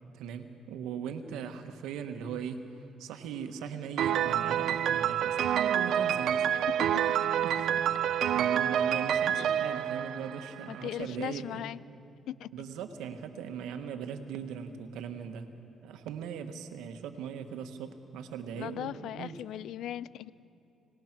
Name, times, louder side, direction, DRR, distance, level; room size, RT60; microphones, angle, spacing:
voice 1, 0.1-2.6 3.0-6.5 7.4-7.7 8.3-11.6 12.5-15.5 15.8-19.4, right 7 dB, 90° right, 7 dB, 1.4 m, -39 dB
Piano, 4.0-10.8, right 9 dB, 70° right, 0.5 m, -28 dB
voice 2, 9.4-9.8 10.7-11.8 12.3-12.5 18.6-20.3, left 12 dB, 80° left, 19 dB, 0.5 m, -39 dB
25.5 x 19.0 x 6.1 m, 2.8 s
cardioid pair, 90°, 0 cm